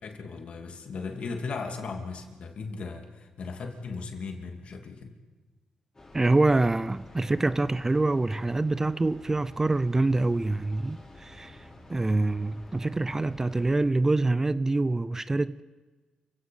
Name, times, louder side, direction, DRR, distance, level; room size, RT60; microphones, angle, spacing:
voice 1, 0.0-3.0 3.4-5.1, left 4 dB, 60° left, 2.8 m, -37 dB
Train, 5.9-13.8, left 1 dB, 25° left, 5.9 m, -50 dB
voice 2, 6.1-11.6 11.9-15.6, right 2 dB, 20° right, 0.5 m, -25 dB
29.5 x 17.0 x 5.5 m
cardioid pair, 75°, 2 cm